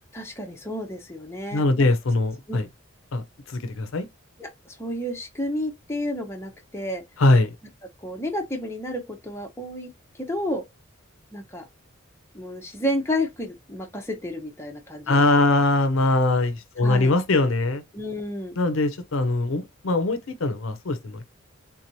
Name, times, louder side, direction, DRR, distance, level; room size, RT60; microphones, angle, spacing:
voice 1, 0.1-1.9 2.5-2.6 4.4-7.0 8.0-9.9 10.1-10.6 11.3-11.7 12.3-15.3 16.8-17.1 17.9-18.6, left 1 dB, 10° left, 0.7 m, -31 dB
voice 2, 1.5-2.7 3.1-4.1 7.2-7.6 15.1-17.8 18.6-21.2, left 2 dB, 70° left, 0.6 m, -22 dB
3.7 x 2.9 x 2.6 m
head